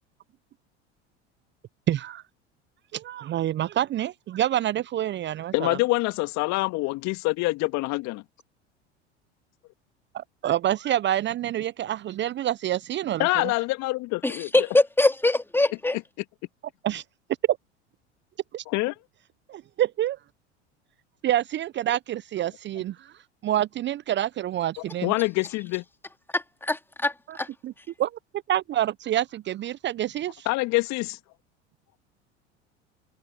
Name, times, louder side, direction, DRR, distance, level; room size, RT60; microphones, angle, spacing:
voice 1, 1.9-2.2 2.9-5.8 10.1-13.5 16.8-17.0 17.5-17.6 18.5-18.6 19.5-20.2 21.2-23.1 23.4-25.1 27.3-27.4 27.6-27.7 28.0-28.1 28.5-30.5, right 12 dB, 30° right, 0.8 m, -27 dB
voice 2, 5.5-8.2 13.2-14.5 15.9-16.0 18.7-18.9 25.0-25.8 30.5-31.2, left 22 dB, 50° left, 2.2 m, -25 dB
voice 3, 14.2-16.0 26.3-27.5, left 2 dB, 5° left, 2.9 m, -23 dB
figure-of-eight pair, 80°, 35 cm